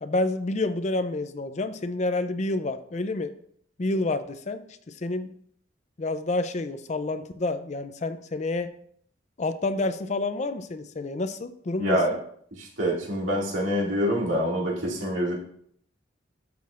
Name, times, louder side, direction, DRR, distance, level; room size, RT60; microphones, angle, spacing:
voice 1, 0.0-3.3 3.8-4.6 5.0-5.3 6.0-8.7 9.4-12.0, left 2 dB, 35° left, 10 dB, 0.5 m, -28 dB
voice 2, 11.8-12.2 12.6-15.3, equal, 85° right, -2 dB, 2.4 m, -26 dB
12.5 x 5.9 x 2.5 m, 0.63 s
head